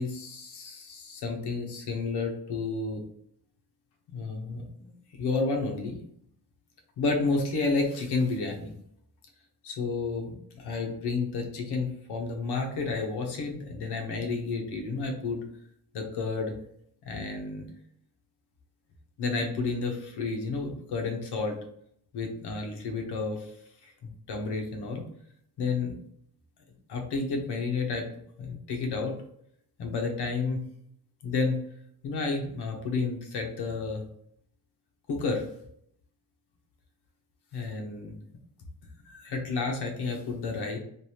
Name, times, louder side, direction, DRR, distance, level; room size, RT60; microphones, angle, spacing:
voice 1, 0.0-3.0 4.1-6.0 7.0-8.7 9.6-15.4 15.9-16.5 17.0-17.7 19.2-21.6 22.1-23.5 23.8-25.1 25.6-25.9 26.9-28.1 28.4-29.2 29.8-30.6 31.2-31.6 32.0-34.0 35.1-35.4 37.5-38.2 39.0-40.8, left 3 dB, 75° left, 2 dB, 1.0 m, -31 dB
3.3 x 2.6 x 2.8 m, 0.69 s
wide cardioid pair, 170°, 40 cm